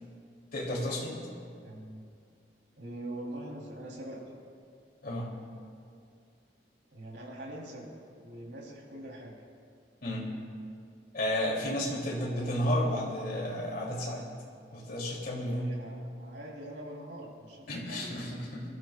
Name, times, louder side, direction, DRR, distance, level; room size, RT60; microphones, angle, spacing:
voice 1, 0.5-1.2 5.0-5.3 10.0-10.3 11.1-14.3 14.7-15.8 17.7-18.7, left 1 dB, 55° left, -3 dB, 2.9 m, -32 dB
voice 2, 1.6-2.0 2.8-4.2 6.9-7.9 8.2-9.4 12.0-12.5 15.5-18.1 18.6-18.7, right 1 dB, 85° right, -3 dB, 3.4 m, -43 dB
26.0 x 13.5 x 2.4 m, 2.3 s
head